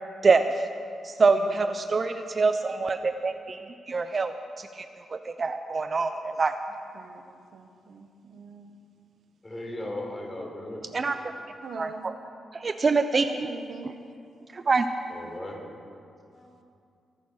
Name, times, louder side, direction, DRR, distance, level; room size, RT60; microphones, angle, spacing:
voice 1, 0.2-0.7 1.0-4.8 5.1-6.6 10.9-11.2 11.8-12.1 12.5-13.5 14.5-14.9, right 4 dB, 40° right, 8 dB, 0.7 m, -25 dB
voice 2, 7.5-8.7 11.6-12.0 13.3-14.0, right 4 dB, 70° right, 6 dB, 1.2 m, -44 dB
voice 3, 9.4-10.9 15.1-15.6 16.3-16.5, left 1 dB, 20° left, 0 dB, 4.2 m, -37 dB
23.0 x 9.0 x 6.4 m, 2.4 s
cardioid pair, 80°, 0 cm